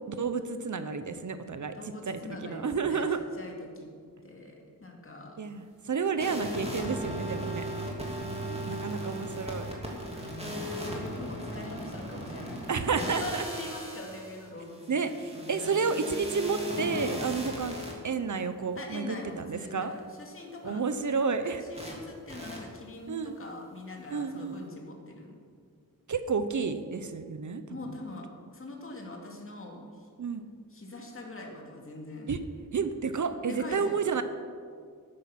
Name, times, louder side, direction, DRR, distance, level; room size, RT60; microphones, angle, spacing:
voice 1, 0.1-1.8 2.1-3.2 5.4-7.6 8.7-9.7 12.7-13.4 14.9-17.8 18.0-19.9 20.6-21.6 23.1-23.4 24.1-24.6 26.1-28.0 30.2-30.5 32.3-32.4 32.7-34.2, right 5 dB, 55° right, 10 dB, 0.8 m, -31 dB
voice 2, 1.7-3.0 3.4-3.9 4.2-5.4 7.9-9.4 10.0-12.6 12.9-16.2 18.8-20.8 21.5-25.3 27.7-28.3 28.5-30.1 30.7-32.3 33.5-34.2, left 2 dB, 40° left, 0 dB, 2.4 m, -43 dB
sound 1, 6.2-17.9 21.7-21.9 22.3-22.6, equal, 15° right, 2.8 m, -37 dB
13.5 x 9.8 x 5.9 m, 2.1 s
wide cardioid pair, 95°, 35 cm